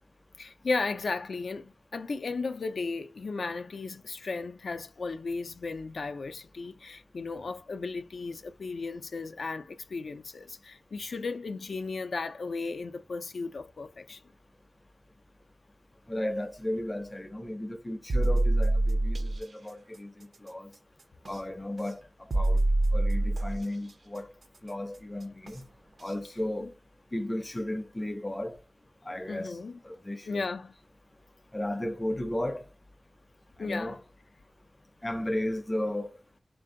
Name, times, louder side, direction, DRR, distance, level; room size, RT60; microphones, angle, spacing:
voice 1, 0.4-14.2 26.6-26.7 29.3-29.8 30.3-30.7 33.6-34.0, left 4 dB, 80° left, 0.3 m, -35 dB
voice 2, 16.1-20.7 21.3-22.0 22.3-22.6 22.9-24.3 24.6-25.6 26.0-26.7 27.1-28.6 29.0-29.6 29.8-30.5 31.5-32.7 33.6-34.0 35.0-36.1, left 1 dB, 20° left, 0.5 m, -34 dB
sound 1, 18.1-19.4 21.2-21.4 22.3-23.6 25.5-25.6 26.1-26.2, right 2 dB, 60° right, 0.4 m, -25 dB
3.7 x 2.5 x 3.6 m
wide cardioid pair, 110°, 0 cm